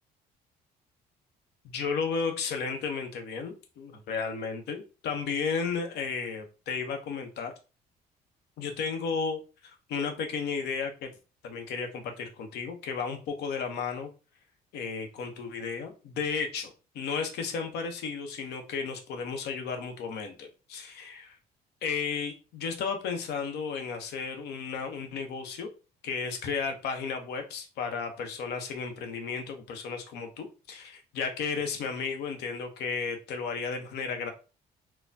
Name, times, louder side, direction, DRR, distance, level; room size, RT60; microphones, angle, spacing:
voice 1, 1.6-7.5 8.6-11.1 11.4-14.1 14.7-21.4 21.8-25.7 26.0-34.3, left 5 dB, 75° left, 5 dB, 0.8 m, -33 dB
4.2 x 2.2 x 2.6 m, 0.33 s
cardioid pair, 110°, 17 cm